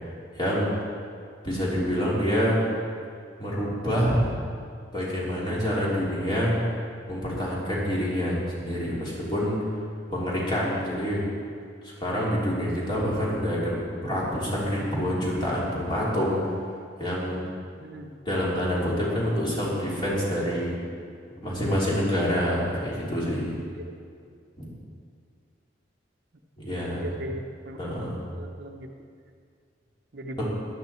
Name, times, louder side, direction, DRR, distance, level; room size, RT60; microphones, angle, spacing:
voice 1, 0.3-0.7 1.4-2.6 3.4-4.2 4.9-6.6 7.1-9.6 10.1-11.2 11.8-13.7 14.0-16.4 17.0-17.4 18.2-20.7 21.4-23.6 24.6-24.7 26.6-27.2 27.8-28.2 30.4-30.5, equal, 25° left, -6 dB, 3.3 m, -27 dB
voice 2, 17.8-18.1 23.8-23.9 26.9-27.9 28.3-28.9 30.1-30.5, right 1 dB, 60° right, 3 dB, 0.9 m, -38 dB
14.5 x 11.0 x 4.4 m, 2.2 s
head